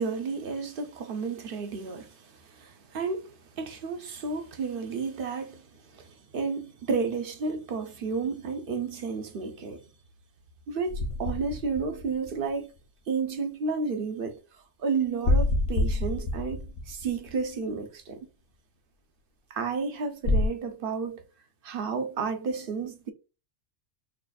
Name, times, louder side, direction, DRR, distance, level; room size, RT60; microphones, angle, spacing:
voice 1, 0.0-9.8 10.7-12.7 13.1-14.4 14.8-18.3 19.5-21.2 21.6-23.1, right 4 dB, 55° right, 0.7 m, -32 dB
sound 1, 10.9-12.8 15.2-17.8 20.2-20.5, left 2 dB, 70° left, 1.1 m, -27 dB
5.7 x 2.4 x 2.3 m
omnidirectional pair, 1.3 m